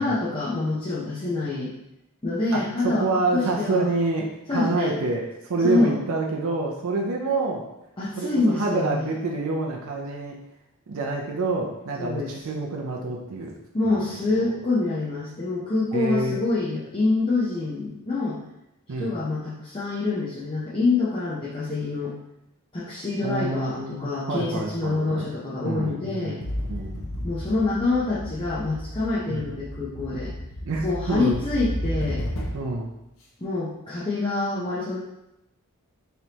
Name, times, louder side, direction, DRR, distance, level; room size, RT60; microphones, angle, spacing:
voice 1, 0.0-1.7 2.2-3.1 3.3-3.9 4.5-5.0 5.6-6.0 8.0-9.1 12.0-12.3 13.7-18.4 19.0-22.1 22.7-26.4 27.2-30.3 30.8-32.2 33.4-35.0, left 3 dB, 20° left, -9 dB, 0.7 m, -26 dB
voice 2, 2.5-7.6 8.2-10.4 10.9-13.5 13.9-14.0 15.9-16.4 18.9-19.2 23.2-25.3 25.6-26.4 26.7-27.0 29.3-29.5 30.6-31.4 32.5-32.9, right 3 dB, 65° right, 0 dB, 0.5 m, -27 dB
sound 1, 26.4-32.8, equal, 65° left, 1.0 m, -33 dB
4.4 x 3.3 x 2.9 m, 0.88 s
head